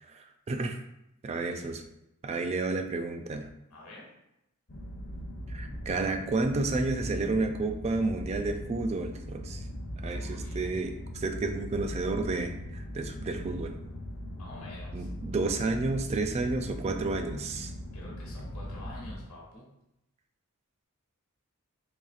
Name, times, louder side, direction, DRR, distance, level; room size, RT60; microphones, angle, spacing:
voice 1, 0.2-0.8 1.2-1.8 2.2-3.5 5.5-9.6 10.0-13.8 14.9-17.7, right 3 dB, 30° right, 5 dB, 0.3 m, -31 dB
voice 2, 3.7-4.1 10.0-10.6 14.4-15.1 17.9-19.7, left 1 dB, 65° left, -4 dB, 1.2 m, -47 dB
sound 1, 4.7-19.2, equal, 45° left, 0.6 m, -39 dB
4.1 x 3.2 x 2.4 m, 0.85 s
head